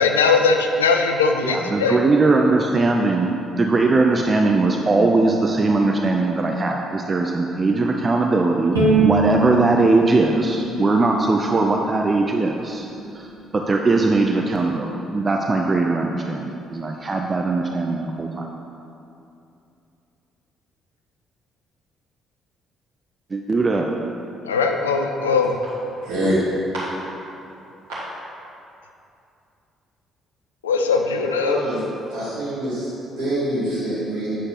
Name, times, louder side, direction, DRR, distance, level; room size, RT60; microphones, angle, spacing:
voice 1, 0.0-2.0 24.4-25.5 30.6-31.6, left 4 dB, 85° left, 4 dB, 0.4 m, -19 dB
voice 2, 1.4-12.8 13.1-13.3 13.5-18.4 23.3-23.9, right 3 dB, 30° right, 1 dB, 0.5 m, -20 dB
Bowed string instrument, 8.8-12.0, right 4 dB, 85° right, 1.4 m, -23 dB
voice 3, 26.0-26.4 31.4-31.8 32.1-34.4, right 1 dB, 70° right, -10 dB, 1.5 m, -25 dB
8.9 x 6.6 x 3.0 m, 2.7 s
figure-of-eight pair, 45°, 0 cm